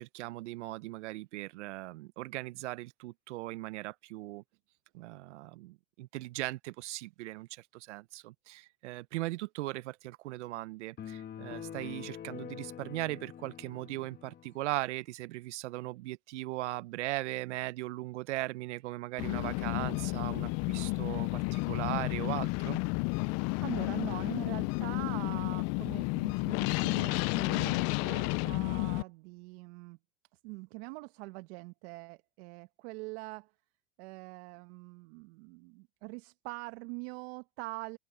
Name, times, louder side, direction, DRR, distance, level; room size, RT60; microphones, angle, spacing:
voice 1, 0.0-4.4 4.9-22.8, right 18 dB, 75° right, 0.7 m, -39 dB
sound 1, 11.0-14.5, left 9 dB, 25° left, 1.8 m, -45 dB
sound 2, 19.2-29.0, left 26 dB, 45° left, 0.5 m, -31 dB
voice 2, 23.2-30.0 30.4-33.5 34.0-38.0, right 26 dB, 60° right, 1.2 m, -43 dB
hypercardioid pair, 110°, 35 cm